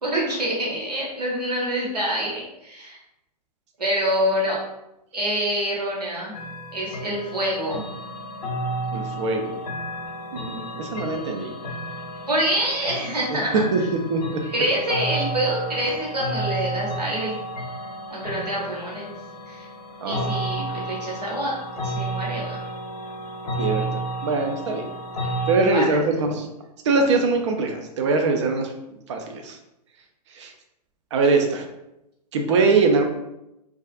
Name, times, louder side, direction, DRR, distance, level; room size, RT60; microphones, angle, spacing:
voice 1, 0.0-3.0 3.8-4.6 5.1-6.3 6.7-7.8 12.3-13.6 14.5-17.4 18.1-19.1 19.5-19.7 20.0-21.5 21.8-22.6 25.6-26.0, equal, 75° right, -4 dB, 1.0 m, -26 dB
sound 1, 6.3-25.6, right 1 dB, 70° left, 0.5 m, -32 dB
voice 2, 8.9-9.6 10.3-11.5 13.3-13.4 13.7-13.8 14.1-14.5 20.0-20.4 23.6-24.8 25.5-26.3 26.9-28.7 29.1-29.6 30.4-30.5 31.1-31.7 32.3-33.0, right 3 dB, 45° right, 3 dB, 0.4 m, -22 dB
2.4 x 2.3 x 2.3 m, 0.87 s
figure-of-eight pair, 110°, 21 cm